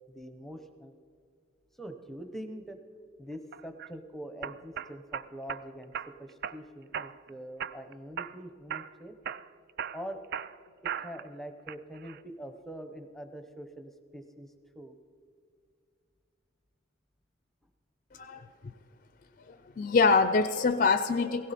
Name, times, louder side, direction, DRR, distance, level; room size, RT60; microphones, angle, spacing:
voice 1, 0.1-0.9 1.8-2.8 3.2-5.9 6.2-9.1 9.9-10.2 10.8-14.9, equal, ahead, 7 dB, 0.7 m, -44 dB
sound 1, 3.5-3.9 4.4-5.6 5.9-6.6 6.9-7.3 7.6-8.4 8.7-8.9 9.3-11.3 11.7-12.2, right 8 dB, 50° right, 0.3 m, -37 dB
voice 2, 19.8-21.5, left 4 dB, 40° left, 11 dB, 0.4 m, -24 dB
17.0 x 15.5 x 4.2 m, 2.2 s
head